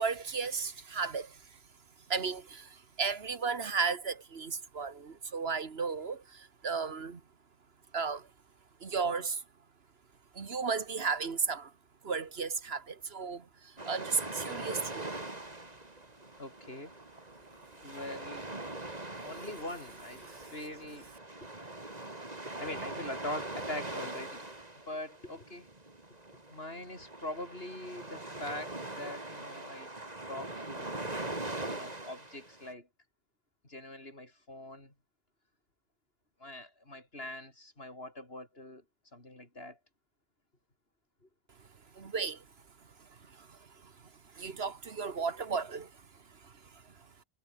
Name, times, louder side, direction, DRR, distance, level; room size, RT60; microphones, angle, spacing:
voice 1, 0.0-1.4 2.1-7.2 7.9-8.3 8.8-9.4 10.4-11.7 12.0-15.1 20.3-20.5 42.0-42.4 43.4-43.9 44.4-45.9 46.4-46.5, right 5 dB, 75° right, 1.8 m, -34 dB
sound 1, 13.8-32.7, right 2 dB, 40° right, 3.2 m, -42 dB
voice 2, 16.4-16.9 17.8-18.5 19.2-21.1 22.6-24.5 24.9-25.7 26.5-29.9 30.3-31.0 31.7-32.9 33.6-34.9 36.4-38.8 39.1-39.8, left 1 dB, 70° left, 6.4 m, -43 dB
omnidirectional pair, 1.1 m